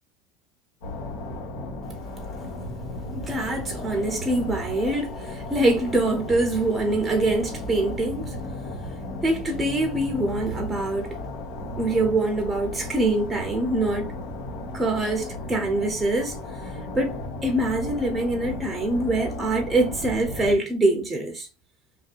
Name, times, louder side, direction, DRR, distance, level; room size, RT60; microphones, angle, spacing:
sound 1, 0.8-20.5, left 1 dB, 80° left, 1.1 m, -35 dB
voice 1, 3.1-8.4 9.2-11.2 11.8-14.1 14.7-16.4 16.9-21.5, right 2 dB, 15° right, 0.6 m, -24 dB
2.6 x 2.2 x 2.4 m
supercardioid pair, 100°, 0 cm